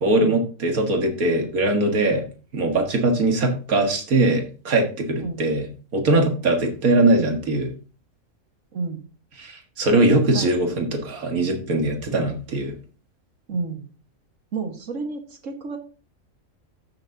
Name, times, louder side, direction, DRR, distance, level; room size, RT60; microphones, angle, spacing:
voice 1, 0.0-2.3 2.5-5.7 5.9-7.7 9.4-12.7, right 2 dB, 85° right, 4 dB, 2.1 m, -21 dB
voice 2, 8.7-9.0 10.3-10.5 13.5-13.9 14.5-15.8, right 4 dB, 65° right, 5 dB, 1.8 m, -30 dB
14.0 x 6.4 x 2.7 m, 0.36 s
omnidirectional pair, 1.5 m